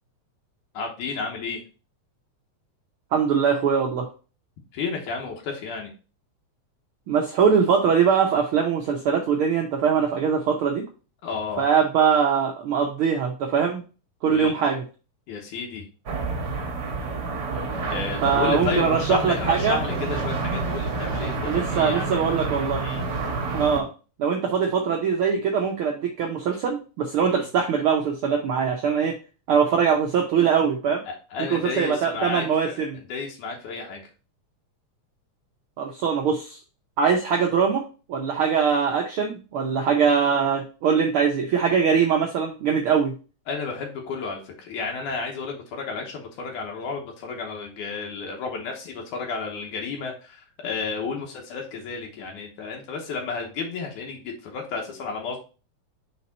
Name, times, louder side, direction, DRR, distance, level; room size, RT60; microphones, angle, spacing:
voice 1, 0.7-1.6 4.7-5.9 11.2-11.7 14.2-14.5 15.3-15.8 17.9-22.5 22.8-23.0 27.2-27.5 31.1-34.0 43.5-55.4, left 4 dB, 90° left, 1 dB, 2.5 m, -32 dB
voice 2, 3.1-4.1 7.1-10.8 11.6-13.8 14.2-14.8 18.2-19.8 21.5-22.9 23.5-23.9 24.2-29.1 29.5-31.0 31.5-33.0 35.8-36.6 37.0-43.1, right 6 dB, 85° right, 2 dB, 1.1 m, -22 dB
sound 1, 16.1-23.8, right 3 dB, 60° right, 1.0 m, -29 dB
5.4 x 4.4 x 4.2 m, 0.35 s
omnidirectional pair, 3.4 m